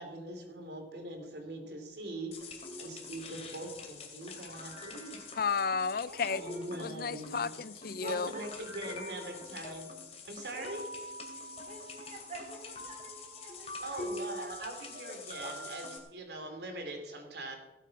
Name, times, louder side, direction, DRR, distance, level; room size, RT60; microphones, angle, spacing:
voice 1, 0.0-5.2 6.4-7.5 8.0-9.9 10.2-10.8 13.8-17.6, right 1 dB, 65° right, 3.1 m, -42 dB
sound 1, 2.3-16.0, left 2 dB, 35° left, 2.7 m, -44 dB
voice 2, 5.4-6.4 6.8-8.3, left 5 dB, 55° left, 0.5 m, -32 dB
voice 3, 6.1-6.6 8.0-8.4 8.8-9.4 10.6-10.7 11.6-14.0 15.1-15.2 15.4-15.7, right 1 dB, 40° right, 3.3 m, -46 dB
17.0 x 8.3 x 6.0 m
head